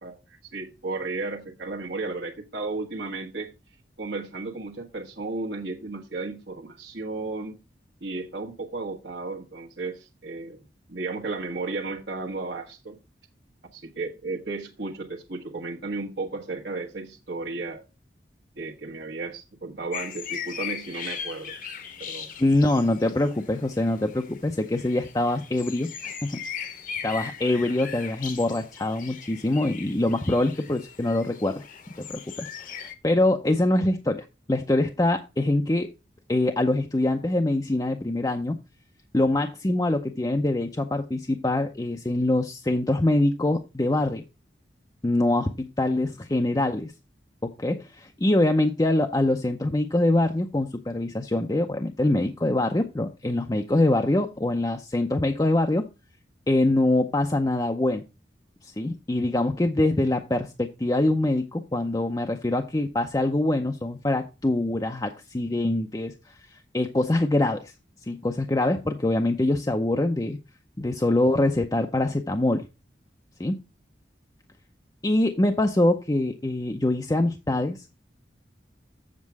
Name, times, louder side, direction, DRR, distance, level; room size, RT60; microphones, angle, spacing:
voice 1, 0.0-3.5 4.0-7.6 8.0-10.6 10.9-13.0 13.7-17.8 18.6-21.5 22.0-22.3, right 3 dB, 70° right, 1.3 m, -34 dB
sound 1, 19.9-32.9, left 7 dB, 45° left, 1.0 m, -39 dB
voice 2, 22.4-26.4 27.0-31.6 32.0-35.9 36.3-38.6 39.1-44.2 45.0-46.9 47.4-55.9 56.5-58.0 58.6-67.7 68.0-70.4 70.8-72.7 73.4-73.6 75.0-77.9, left 1 dB, 20° left, 0.6 m, -24 dB
7.5 x 7.3 x 4.6 m
head